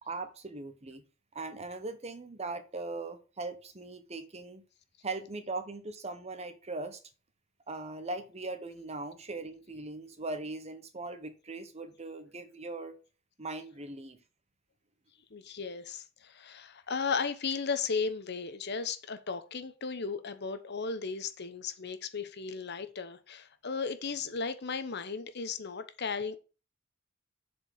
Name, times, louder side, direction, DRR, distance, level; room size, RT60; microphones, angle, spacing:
voice 1, 0.0-1.0 1.3-4.6 5.0-7.0 7.7-13.0 13.4-14.2, right 3 dB, 35° right, 1.1 m, -40 dB
voice 2, 15.3-26.4, left 5 dB, 55° left, 1.0 m, -35 dB
7.5 x 4.8 x 7.2 m
head